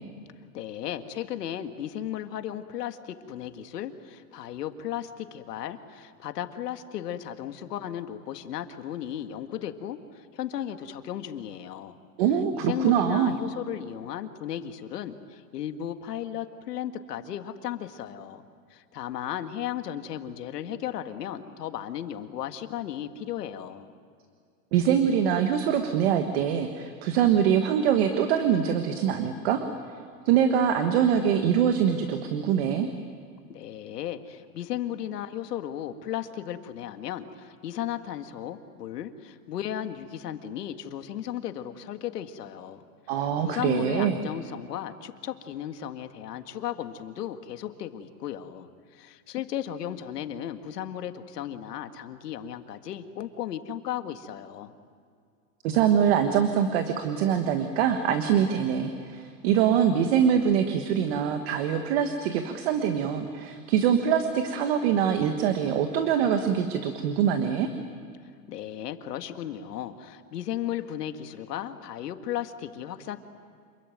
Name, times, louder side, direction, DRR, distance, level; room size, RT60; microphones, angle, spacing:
voice 1, 0.5-12.0 12.5-18.4 18.7-23.9 33.5-42.8 43.1-48.7 48.9-54.7 68.5-73.2, left 11 dB, 85° left, 8 dB, 1.9 m, -35 dB
voice 2, 12.2-13.3 24.7-29.7 30.2-32.9 43.1-44.2 55.6-67.7, right 8 dB, 40° right, 7 dB, 1.5 m, -24 dB
27.5 x 22.0 x 9.2 m, 2.2 s
supercardioid pair, 170°, 46 cm